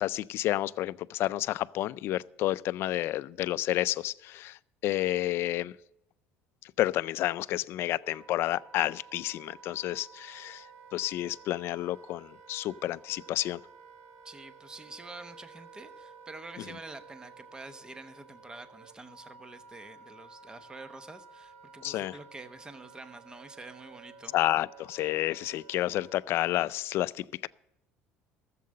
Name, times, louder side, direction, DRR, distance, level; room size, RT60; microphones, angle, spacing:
voice 1, 0.0-5.8 6.6-10.7 10.9-13.6 16.6-16.7 21.8-22.2 24.3-27.5, left 15 dB, 60° left, 18 dB, 0.4 m, -30 dB
Wind instrument woodwind instrument, 7.5-26.4, right 5 dB, 65° right, 1.5 m, -53 dB
voice 2, 14.2-24.3, right 2 dB, 15° right, 11 dB, 0.9 m, -47 dB
13.5 x 7.6 x 6.5 m, 0.82 s
supercardioid pair, 95°, 5 cm